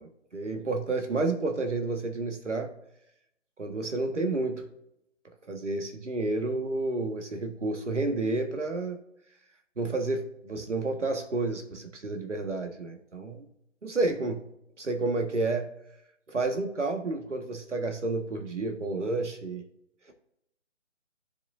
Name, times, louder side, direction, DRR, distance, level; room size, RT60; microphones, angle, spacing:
voice 1, 0.0-2.7 3.6-4.6 5.5-9.0 9.8-13.5 13.8-14.5 14.8-15.7 16.3-19.6, right 2 dB, 70° right, 5 dB, 1.5 m, -30 dB
14.0 x 5.1 x 2.5 m, 0.78 s
figure-of-eight pair, 150°, 37 cm